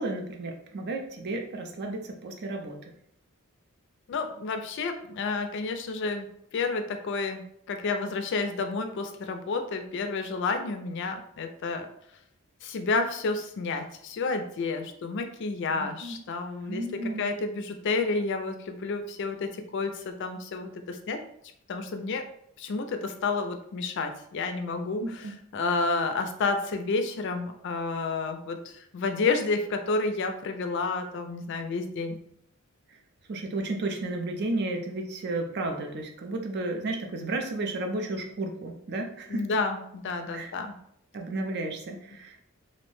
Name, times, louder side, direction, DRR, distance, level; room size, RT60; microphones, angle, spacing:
voice 1, 0.0-2.8 15.7-16.2 16.6-17.3 25.0-25.4 33.3-39.5 40.3-40.5 41.1-42.4, right 2 dB, 55° right, 3 dB, 0.5 m, -33 dB
voice 2, 4.1-6.3 6.5-11.9 12.6-21.2 21.7-22.2 22.6-32.2 39.3-40.8, left 3 dB, 60° left, 6 dB, 0.4 m, -30 dB
2.7 x 2.1 x 3.0 m, 0.70 s
head